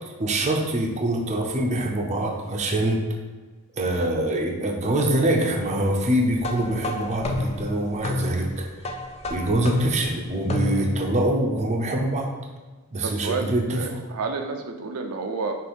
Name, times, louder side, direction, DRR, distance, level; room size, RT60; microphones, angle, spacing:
voice 1, 0.2-3.0 3.7-8.7 9.3-12.3 12.9-14.0, right 1 dB, 30° right, 1 dB, 0.6 m, -24 dB
sound 1, 6.4-11.1, left 2 dB, 30° left, 0.4 m, -30 dB
voice 2, 13.0-15.5, right 4 dB, 80° right, 4 dB, 0.5 m, -30 dB
6.1 x 2.5 x 3.4 m, 1.3 s
head